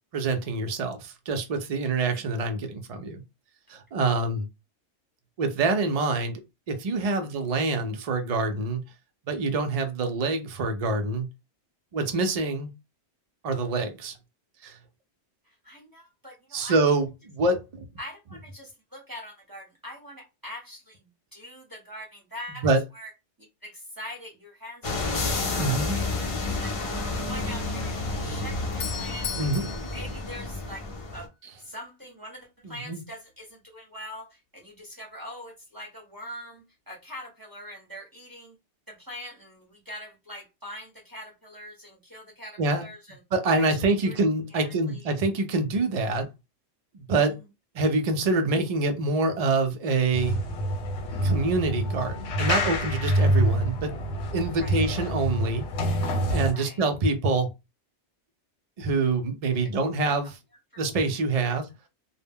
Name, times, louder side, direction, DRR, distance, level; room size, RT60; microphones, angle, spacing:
voice 1, 0.1-3.2 3.7-4.5 5.4-6.4 6.7-8.8 9.3-11.3 11.9-12.7 13.4-14.1 14.6-14.8 16.5-17.9 22.6-22.8 25.6-26.0 29.3-29.9 32.6-33.0 42.6-42.9 43.3-46.3 46.9-47.4 47.7-50.4 51.2-53.9 54.3-55.7 56.3-57.5 58.8-60.4 60.8-61.6, right 3 dB, 80° right, 0.3 m, -26 dB
voice 2, 15.4-16.8 18.0-23.1 23.4-29.5 29.9-31.3 31.6-38.6 38.9-43.2 43.6-44.2 44.5-45.0 47.1-47.2 54.6-54.8 56.5-56.8 59.5-59.7 60.2-60.3 60.7-61.2, equal, 25° right, 0.6 m, -43 dB
sound 1, 24.8-31.3, left 3 dB, 50° left, 0.4 m, -30 dB
Doorbell, 28.6-31.2, left 7 dB, 70° left, 0.8 m, -38 dB
sound 2, 50.1-56.5, equal, 90° left, 1.0 m, -26 dB
2.1 x 2.0 x 3.4 m
omnidirectional pair, 1.2 m